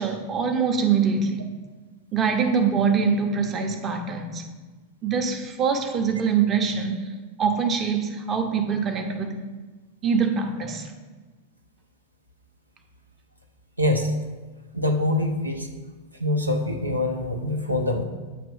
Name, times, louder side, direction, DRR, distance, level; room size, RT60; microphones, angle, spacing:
voice 1, 0.0-1.5 2.1-4.4 5.0-7.0 7.4-9.4 10.0-10.9, right 6 dB, 25° right, 4 dB, 0.7 m, -24 dB
voice 2, 13.8-14.1 14.7-15.8 16.1-18.0, left 1 dB, 85° right, 3 dB, 0.6 m, -24 dB
8.5 x 3.0 x 5.3 m, 1.3 s
figure-of-eight pair, 90°, 0 cm